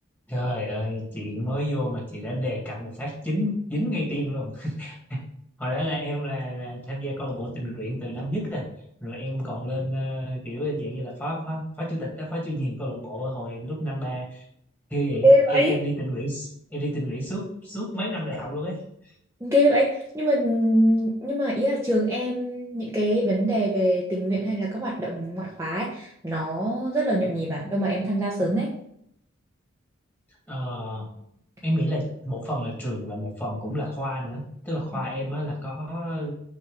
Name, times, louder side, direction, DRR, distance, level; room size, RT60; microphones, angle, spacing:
voice 1, 0.3-5.3 5.6-8.6 9.0-14.4 14.9-18.8 30.5-31.1 31.6-36.3, equal, 10° left, -4 dB, 2.2 m, -30 dB
voice 2, 15.2-15.8 19.4-28.7, equal, 15° right, -5 dB, 1.1 m, -23 dB
6.4 x 4.6 x 4.9 m, 0.71 s
head